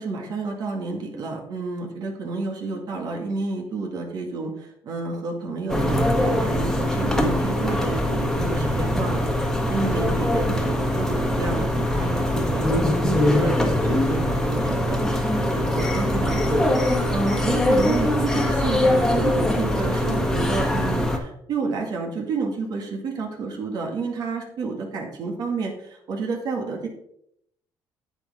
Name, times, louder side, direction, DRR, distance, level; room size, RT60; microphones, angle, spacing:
voice 1, 0.0-26.9, right 3 dB, 60° right, 1 dB, 2.1 m, -30 dB
sound 1, 5.7-21.2, left 1 dB, 5° left, 1.5 m, -22 dB
9.7 x 7.9 x 3.6 m, 0.74 s
cardioid pair, 110°, 8 cm